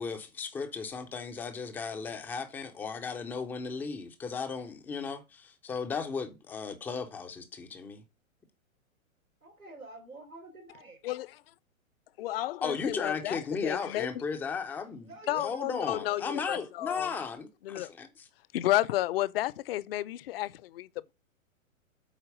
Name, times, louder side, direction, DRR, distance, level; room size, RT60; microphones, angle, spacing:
voice 1, 0.0-8.0 12.6-18.3, left 5 dB, 5° left, 0.4 m, -35 dB
voice 2, 9.4-11.0 15.0-16.6, right 3 dB, 90° right, 4.1 m, -48 dB
voice 3, 11.0-11.4 12.2-14.1 15.3-17.1 17.6-17.9 18.5-21.1, left 15 dB, 45° left, 0.6 m, -32 dB
8.2 x 4.4 x 6.6 m
figure-of-eight pair, 115°, 42 cm